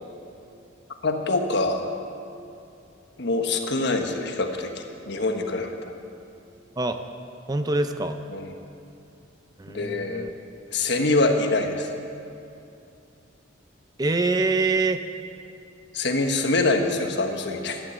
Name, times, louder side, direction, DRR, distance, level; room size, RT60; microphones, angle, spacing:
voice 1, 1.0-1.9 3.2-5.8 8.3-8.5 9.7-10.3 10.7-11.9 15.9-17.8, left 2 dB, 60° left, 4 dB, 1.3 m, -25 dB
voice 2, 7.5-8.2 9.6-10.3 14.0-15.0, right 3 dB, 20° right, 8 dB, 0.6 m, -24 dB
12.5 x 11.0 x 8.0 m, 2.6 s
head